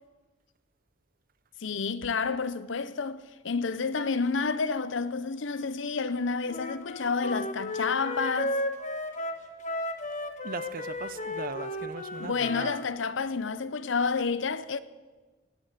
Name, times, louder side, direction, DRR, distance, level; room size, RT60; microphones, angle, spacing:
voice 1, 1.6-8.6 12.2-14.8, left 4 dB, 65° left, 0.7 m, -30 dB
Wind instrument woodwind instrument, 6.5-12.8, left 1 dB, 40° left, 1.2 m, -34 dB
voice 2, 10.4-12.8, right 4 dB, 45° right, 0.6 m, -38 dB
19.0 x 7.8 x 8.3 m
head